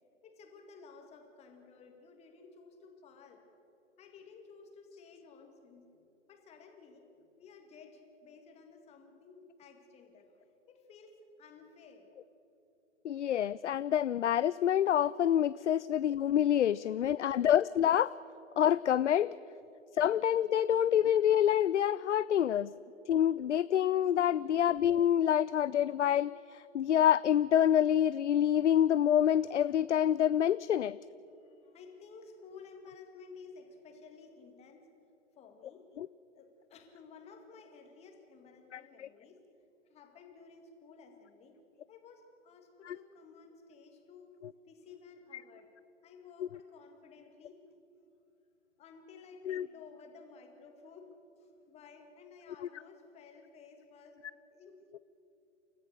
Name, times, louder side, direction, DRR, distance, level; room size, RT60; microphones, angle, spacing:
voice 1, 0.2-3.4 4.0-5.8 6.3-7.1 7.4-10.3 10.7-12.1 31.3-34.9 35.4-35.9 36.3-39.4 39.9-41.6 41.9-44.3 44.7-45.7 46.0-47.6 48.8-51.1 51.4-54.2 54.5-54.8, left 5 dB, 15° left, 4 dB, 2.2 m, -54 dB
voice 2, 13.0-18.1 18.6-19.4 19.9-22.7 23.1-31.0 36.0-36.1 38.7-39.1 42.9-43.0 46.4-46.5 49.4-49.7, left 10 dB, 70° left, 18 dB, 0.5 m, -27 dB
29.0 x 14.0 x 6.7 m, 2.9 s
figure-of-eight pair, 125°, 37 cm